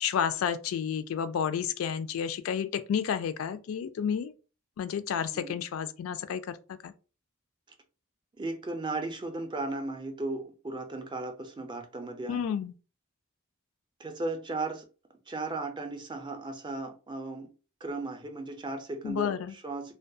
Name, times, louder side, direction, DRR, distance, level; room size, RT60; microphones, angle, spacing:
voice 1, 0.0-4.3 4.8-6.6 6.8-6.9 12.3-12.7 19.0-19.5, left 8 dB, 80° left, 0.3 m, -31 dB
voice 2, 8.4-12.4 14.0-14.9 15.3-17.5 17.8-19.9, right 2 dB, 20° right, 0.4 m, -36 dB
2.2 x 2.2 x 2.6 m
head